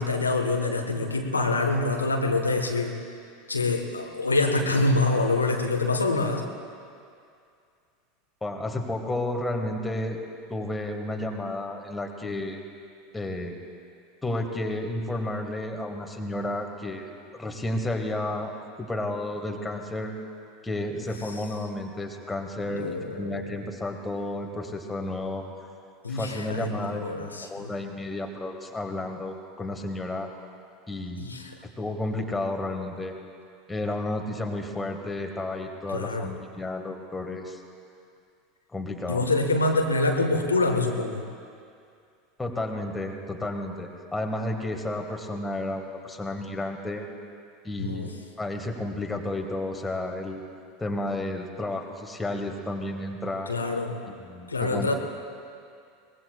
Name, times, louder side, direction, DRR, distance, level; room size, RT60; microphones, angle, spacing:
voice 1, 0.0-2.9 3.5-6.4 22.7-23.4 26.0-27.7 31.2-31.5 35.9-36.3 39.1-41.2 47.8-48.1 53.5-53.9 54.5-55.0, left 2 dB, 80° left, 3 dB, 1.2 m, -25 dB
voice 2, 8.4-10.2 10.5-12.6 13.1-13.5 14.2-18.5 18.8-20.1 20.6-25.5 26.1-27.1 27.5-30.3 30.9-31.3 31.8-33.1 33.7-37.6 38.7-39.3 42.4-47.0 47.6-48.1 48.4-50.4 50.8-53.5 54.1-55.0, left 1 dB, 10° left, 3 dB, 1.6 m, -32 dB
23.0 x 20.0 x 2.3 m, 2.3 s
figure-of-eight pair, 80°, 0 cm